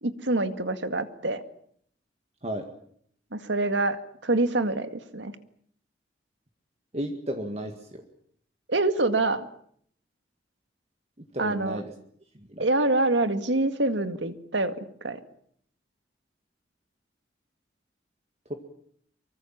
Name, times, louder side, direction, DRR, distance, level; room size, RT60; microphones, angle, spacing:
voice 1, 0.0-1.4 3.3-5.4 8.7-9.5 11.4-11.8 12.6-15.2, right 2 dB, 85° right, 10 dB, 2.0 m, -26 dB
voice 2, 6.9-8.0 11.3-11.9 12.3-12.7 18.5-18.6, equal, 35° right, 4 dB, 1.9 m, -33 dB
24.5 x 24.0 x 7.4 m, 0.66 s
head